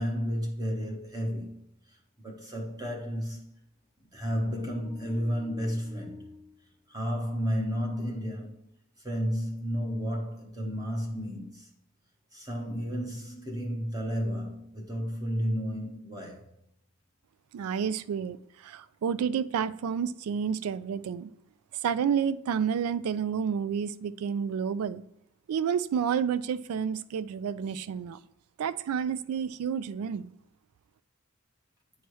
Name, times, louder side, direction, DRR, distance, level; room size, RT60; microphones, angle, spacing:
voice 1, 0.0-1.6 1.9-3.5 4.1-6.4 6.9-8.7 9.0-11.7 12.3-16.5, equal, 15° right, 0.9 m, -32 dB
voice 2, 17.5-18.4 18.6-21.3 21.8-25.0 25.5-28.2 28.6-30.3, right 7 dB, 90° right, 0.3 m, -30 dB
9.2 x 3.1 x 4.6 m
head